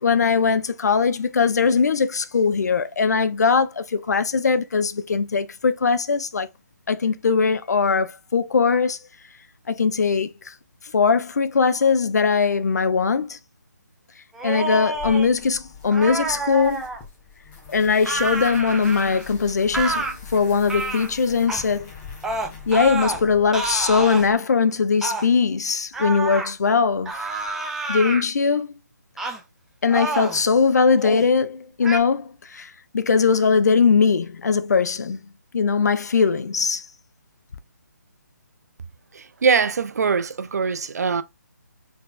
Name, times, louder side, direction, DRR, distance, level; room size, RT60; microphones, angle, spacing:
voice 1, 0.0-6.5 6.9-9.0 9.7-10.5 10.9-13.4 14.4-16.8 17.7-21.9 22.7-27.1 27.9-28.7 29.8-35.2 35.5-36.8, left 5 dB, 65° left, 0.7 m, -20 dB
sound 1, 14.3-15.3 15.9-17.0 18.0-19.3 19.7-20.1 20.7-21.1 21.5-21.7 22.2-23.2 23.5-24.3 25.0-25.3 25.9-26.5 27.1-28.2 29.2-29.4 29.9-30.4 30.9-31.3 31.8-32.0, right 3 dB, 5° right, 0.4 m, -28 dB
sound 2, 14.9-24.4, left 5 dB, 15° left, 1.5 m, -42 dB
voice 2, 39.1-41.2, right 5 dB, 60° right, 0.6 m, -22 dB
4.3 x 4.1 x 2.4 m
figure-of-eight pair, 150°, 10 cm